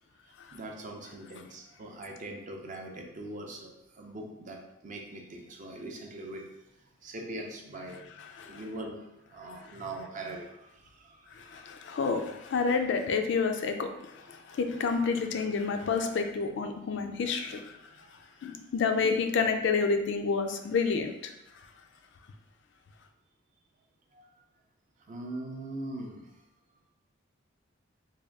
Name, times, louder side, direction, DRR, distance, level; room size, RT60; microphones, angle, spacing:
voice 1, 0.5-6.5 7.0-8.1 8.4-11.6 14.7-15.0 18.0-18.1 24.1-24.3 25.1-26.3, right 2 dB, 35° right, 2 dB, 0.4 m, -42 dB
voice 2, 11.3-17.8 18.4-21.3, left 5 dB, 60° left, 6 dB, 0.3 m, -29 dB
3.5 x 2.3 x 3.4 m, 0.87 s
head